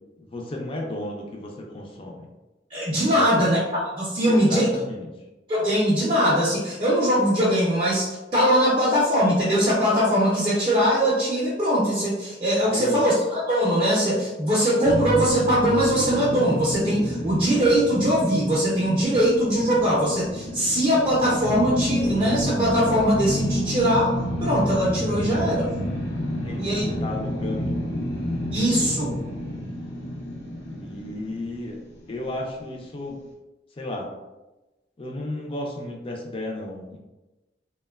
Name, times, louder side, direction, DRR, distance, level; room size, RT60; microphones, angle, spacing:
voice 1, 0.2-2.3 3.1-3.5 4.2-5.1 12.7-13.0 26.4-27.8 30.7-31.8 32.1-33.2 33.8-34.1 35.0-37.0, left 1 dB, 30° left, 0 dB, 0.4 m, -33 dB
voice 2, 2.7-3.6 4.0-4.7 5.5-24.1 24.4-25.7 26.6-26.9 28.5-29.2, equal, 30° right, -7 dB, 0.5 m, -21 dB
sound 1, 14.8-32.0, equal, 75° left, 0.6 m, -29 dB
2.9 x 2.1 x 2.2 m, 1.1 s
head